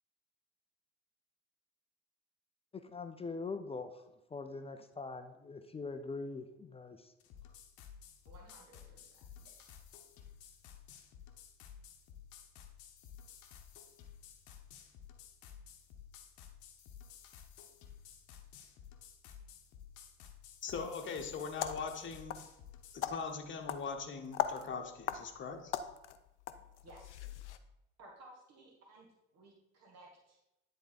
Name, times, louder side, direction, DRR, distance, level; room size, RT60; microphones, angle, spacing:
voice 1, 2.7-3.9 4.3-7.1, left 4 dB, 15° left, 8 dB, 0.5 m, -42 dB
sound 1, 7.2-23.0, left 8 dB, 55° left, 0.9 m, -54 dB
voice 2, 8.3-9.7 26.8-27.2 28.0-29.1 29.3-30.4, right 2 dB, 50° right, 0 dB, 1.6 m, -58 dB
voice 3, 20.6-22.4 22.9-25.7, left 5 dB, 35° left, 4 dB, 1.1 m, -41 dB
sound 2, 21.4-27.6, left 10 dB, 85° left, 0.5 m, -41 dB
9.9 x 3.7 x 4.0 m, 0.89 s
figure-of-eight pair, 55°, 34 cm